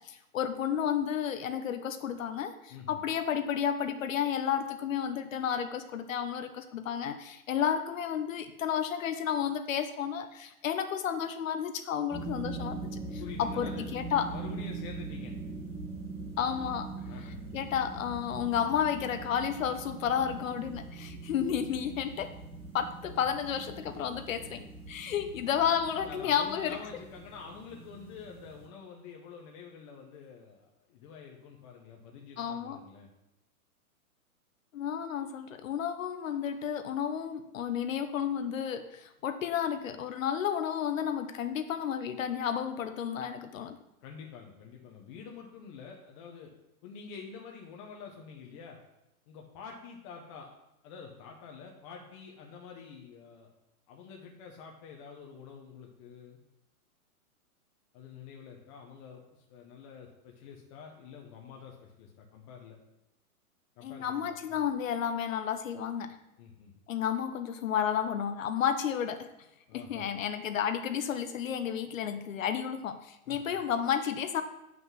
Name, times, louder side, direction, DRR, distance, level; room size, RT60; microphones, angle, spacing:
voice 1, 0.0-14.2 16.4-16.9 17.5-22.3 22.7-26.8 32.4-32.8 34.7-43.8 63.8-66.2 66.9-69.3 69.7-74.4, left 8 dB, 60° left, 9 dB, 0.8 m, -32 dB
voice 2, 2.7-3.0 13.2-13.9 14.3-15.3 17.0-17.4 26.0-33.1 44.0-46.5 46.8-48.8 49.3-50.5 50.8-53.5 53.9-56.4 57.9-62.8 63.8-64.7 66.4-66.7 69.7-70.1 73.3-73.6, left 6 dB, 20° left, 0 dB, 0.7 m, -47 dB
sound 1, 12.1-28.7, right 3 dB, 10° right, 1.5 m, -42 dB
7.7 x 5.8 x 6.1 m, 0.91 s
hypercardioid pair, 150°, 45 cm